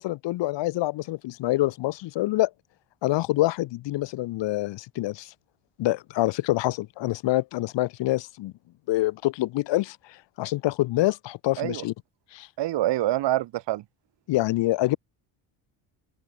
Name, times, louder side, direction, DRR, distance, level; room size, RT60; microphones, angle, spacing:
voice 1, 0.0-2.5 3.0-5.3 5.8-8.5 8.9-11.9 12.3-12.5 14.3-15.0, left 17 dB, 75° left, 1.8 m, -26 dB
voice 2, 12.6-13.8, right 15 dB, 70° right, 7.3 m, -26 dB
open air
cardioid pair, 160°, 43 cm